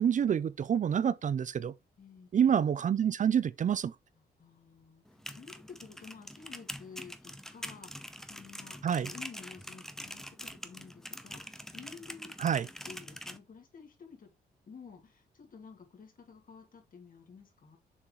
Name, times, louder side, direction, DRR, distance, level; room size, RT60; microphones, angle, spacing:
voice 1, 0.0-1.7 2.3-3.9 8.8-9.1 12.4-12.6, right 8 dB, 45° right, 0.5 m, -27 dB
voice 2, 2.0-2.3 4.1-12.3 12.6-14.3 14.7-17.8, left 5 dB, 50° left, 2.6 m, -52 dB
sound 1, 5.1-13.4, equal, ahead, 0.8 m, -45 dB
7.1 x 4.4 x 3.1 m
cardioid pair, 75°, 18 cm